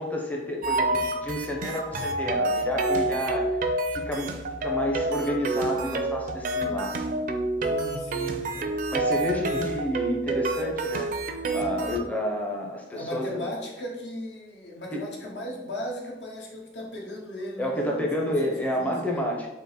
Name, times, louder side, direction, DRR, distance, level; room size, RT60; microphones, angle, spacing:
voice 1, 0.0-4.3 4.6-6.9 8.9-13.4 14.9-15.0 17.6-19.5, equal, 10° left, -1 dB, 0.5 m, -30 dB
sound 1, 0.6-12.0, right 2 dB, 50° right, 0.4 m, -28 dB
voice 2, 7.6-8.7 9.2-9.6 12.9-19.3, left 1 dB, 80° left, -1 dB, 1.0 m, -37 dB
3.7 x 2.8 x 4.0 m, 1.0 s
head